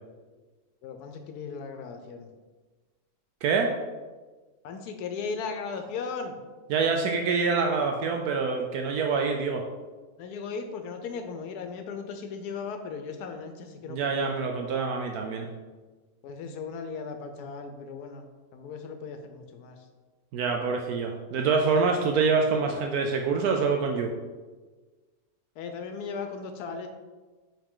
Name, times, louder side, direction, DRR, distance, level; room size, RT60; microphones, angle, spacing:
voice 1, 0.8-2.3 4.6-6.4 10.2-14.3 16.2-18.2 18.5-19.8 25.6-26.9, left 5 dB, 85° left, 6 dB, 1.1 m, -37 dB
voice 2, 6.7-9.6 13.9-15.5 20.3-24.1, right 5 dB, 75° right, 2 dB, 1.1 m, -26 dB
5.5 x 4.9 x 3.7 m, 1.3 s
omnidirectional pair, 1.6 m